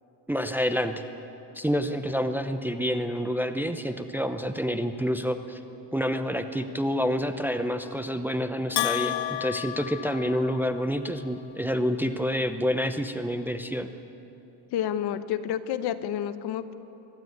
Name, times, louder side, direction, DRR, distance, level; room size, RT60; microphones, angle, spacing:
voice 1, 0.3-0.9 1.5-5.6 5.9-13.9, equal, 5° right, 8 dB, 0.7 m, -28 dB
Bell, 8.8-10.9, left 15 dB, 75° left, 0.8 m, -31 dB
voice 2, 14.7-16.7, left 10 dB, 55° left, 12 dB, 1.1 m, -29 dB
25.0 x 12.5 x 9.3 m, 2.9 s
cardioid pair, 125°, 47 cm